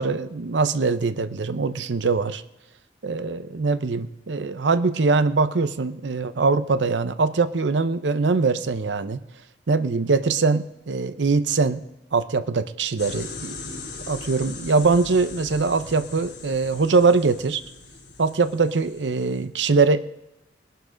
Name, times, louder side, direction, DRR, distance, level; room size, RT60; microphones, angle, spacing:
voice 1, 0.0-2.4 3.0-9.2 9.7-11.8 12.1-17.6 18.2-20.0, right 4 dB, 80° right, 13 dB, 0.7 m, -22 dB
sound 1, 13.0-19.4, left 3 dB, 70° left, 3.0 m, -40 dB
20.0 x 11.5 x 3.9 m, 0.95 s
head